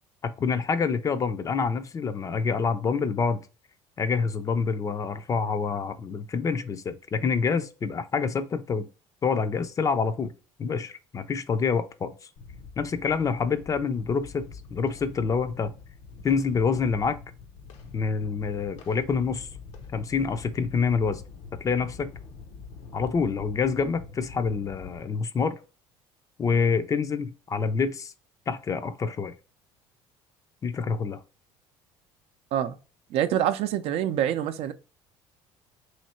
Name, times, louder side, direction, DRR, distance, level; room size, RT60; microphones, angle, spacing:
voice 1, 0.2-3.4 4.0-8.9 9.2-10.3 10.6-12.1 12.8-15.7 16.2-17.2 17.9-19.5 19.9-21.2 21.6-22.1 22.9-25.6 26.4-28.1 28.5-29.3 30.6-31.2, left 5 dB, 30° left, 0.4 m, -27 dB
sound 1, 12.4-25.0, left 5 dB, 70° left, 0.7 m, -45 dB
voice 2, 33.1-34.7, right 10 dB, 65° right, 0.5 m, -26 dB
3.2 x 2.8 x 4.1 m
supercardioid pair, 105°, 11 cm